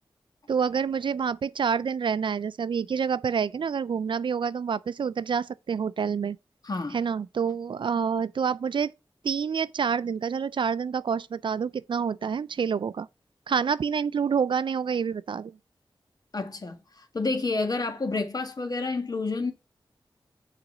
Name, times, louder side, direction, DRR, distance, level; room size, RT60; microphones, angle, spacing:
voice 1, 0.5-6.4 6.9-8.9 9.2-13.1 13.5-15.5, right 6 dB, 70° right, 0.4 m, -27 dB
voice 2, 6.6-7.0 16.3-19.5, left 3 dB, 50° left, 1.5 m, -29 dB
6.8 x 4.1 x 6.0 m
wide cardioid pair, 65°, 9 cm